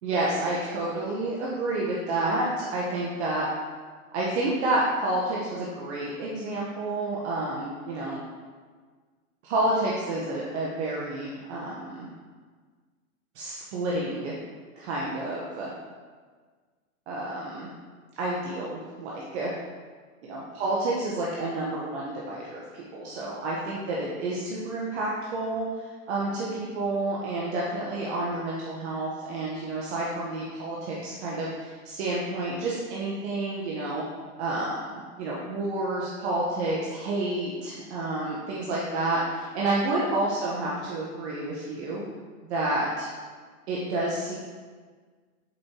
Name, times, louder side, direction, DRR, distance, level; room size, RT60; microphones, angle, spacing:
voice 1, 0.0-3.5 4.1-8.2 9.4-12.1 13.3-14.3 14.8-15.7 17.1-17.7 18.2-19.5 20.2-34.0 34.4-42.0 42.5-43.1 43.7-44.4, right 2 dB, 50° right, -5 dB, 1.3 m, -29 dB
7.5 x 5.2 x 3.0 m, 1.5 s
hypercardioid pair, 130°, 44 cm